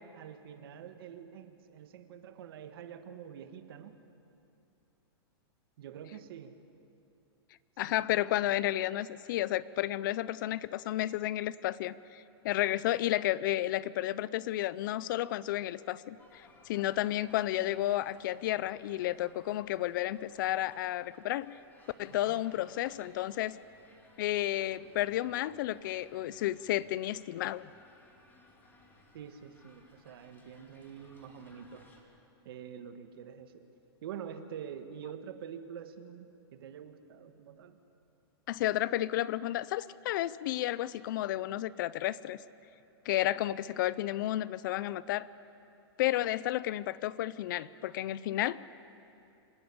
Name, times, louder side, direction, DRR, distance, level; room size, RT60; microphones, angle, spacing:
voice 1, 0.0-4.0 5.8-6.5 7.9-8.0 22.1-22.4 29.1-31.9 32.4-33.6 34.0-37.8, right 8 dB, 60° right, 8 dB, 1.5 m, -46 dB
voice 2, 7.8-21.5 22.0-23.6 24.2-27.7 38.5-42.4 43.1-45.3 46.0-48.6, left 14 dB, 50° left, 19 dB, 0.5 m, -32 dB
sound 1, 16.2-32.0, left 2 dB, 15° left, 2.3 m, -61 dB
26.5 x 10.0 x 9.8 m, 2.7 s
hypercardioid pair, 150°, 14 cm